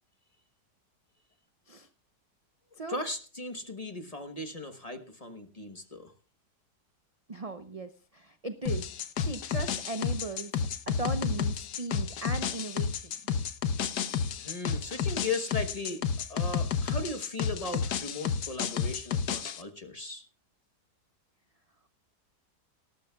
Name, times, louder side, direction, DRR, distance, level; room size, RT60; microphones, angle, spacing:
voice 1, 2.9-6.1 14.4-16.0 16.3-20.2, left 3 dB, 25° left, 6 dB, 1.0 m, -37 dB
voice 2, 7.3-8.9 9.2-13.1, right 3 dB, 45° right, 8 dB, 0.4 m, -38 dB
sound 1, 8.7-19.6, left 6 dB, 70° left, 1.4 m, -31 dB
19.0 x 12.5 x 2.3 m, 0.38 s
omnidirectional pair, 1.8 m